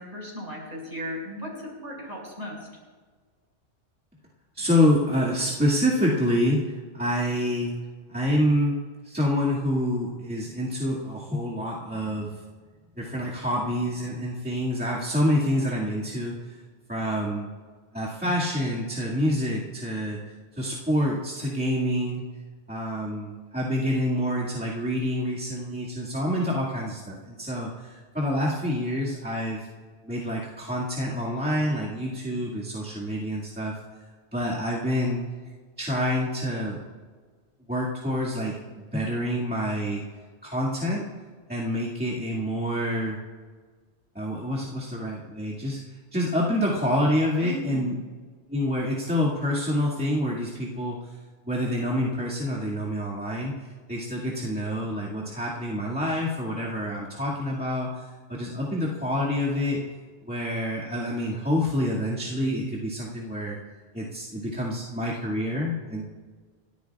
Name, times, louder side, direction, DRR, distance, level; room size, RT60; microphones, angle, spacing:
voice 1, 0.0-2.6 47.4-47.9, equal, 35° right, -4 dB, 6.0 m, -35 dB
voice 2, 4.6-7.7 8.1-12.4 13.0-16.6 16.9-17.5 17.9-20.2 20.5-22.2 22.7-29.7 30.0-33.7 34.3-35.2 35.8-36.8 37.7-38.6 38.9-40.0 40.4-41.1 41.5-43.2 44.1-45.8 46.1-47.9 48.5-51.0 51.5-53.6 53.9-58.0 58.3-59.8 60.2-63.6 63.9-66.0, equal, 10° right, -7 dB, 2.1 m, -27 dB
29.0 x 13.5 x 2.4 m, 1.5 s
omnidirectional pair, 1.2 m